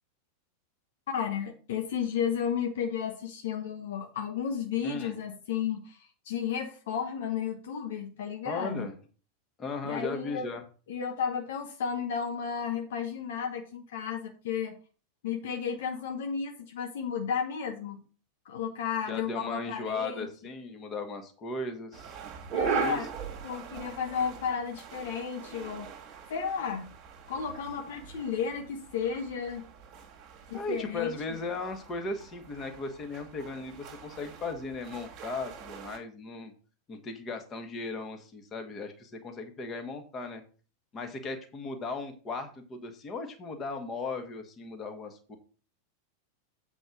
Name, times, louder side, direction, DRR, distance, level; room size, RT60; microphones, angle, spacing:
voice 1, 1.1-8.9 9.8-10.5 10.9-14.8 15.2-18.0 18.4-20.3 22.5-23.1 23.4-25.9 26.3-26.9 27.3-29.6 30.5-31.1, left 7 dB, 60° left, 4 dB, 1.1 m, -33 dB
voice 2, 4.8-5.2 8.4-8.9 9.6-10.6 19.1-22.2 22.8-23.0 30.5-36.5 36.9-40.4 40.9-45.4, left 3 dB, 25° left, 6 dB, 1.6 m, -37 dB
sound 1, 21.9-36.0, right 8 dB, 35° right, 1.6 m, -40 dB
8.0 x 4.3 x 6.0 m, 0.38 s
figure-of-eight pair, 90°, 0 cm